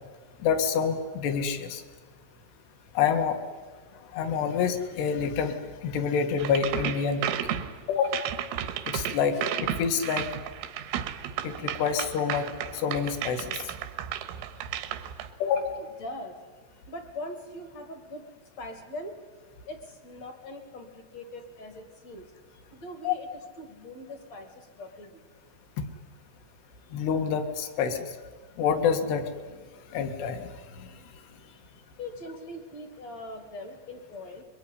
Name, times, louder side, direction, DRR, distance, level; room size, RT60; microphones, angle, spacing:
voice 1, 0.4-1.8 3.0-3.4 4.1-7.6 7.9-8.3 8.9-10.3 11.4-13.6 15.4-15.8 23.0-23.2 26.9-28.1 28.6-29.3 29.9-30.5 30.8-30.9, left 6 dB, 65° left, 7 dB, 3.4 m, -27 dB
sound 1, 6.4-15.3, right 10 dB, 85° right, 3.8 m, -33 dB
voice 2, 15.8-16.4 16.9-18.2 18.6-19.2 19.7-22.2 22.7-25.2 32.0-34.4, left 1 dB, 45° left, 6 dB, 2.4 m, -41 dB
23.5 x 22.5 x 9.8 m, 1.5 s
omnidirectional pair, 5.6 m